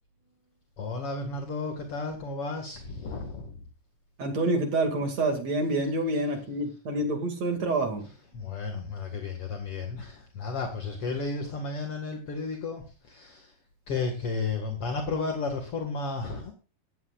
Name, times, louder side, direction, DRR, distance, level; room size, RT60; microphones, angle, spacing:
voice 1, 0.8-3.5 8.3-13.5 13.9-16.5, left 4 dB, 45° left, 4 dB, 2.1 m, -33 dB
voice 2, 4.2-8.0 11.1-11.2, right 2 dB, 45° right, 4 dB, 3.1 m, -27 dB
17.5 x 13.5 x 2.5 m, 0.33 s
omnidirectional pair, 4.9 m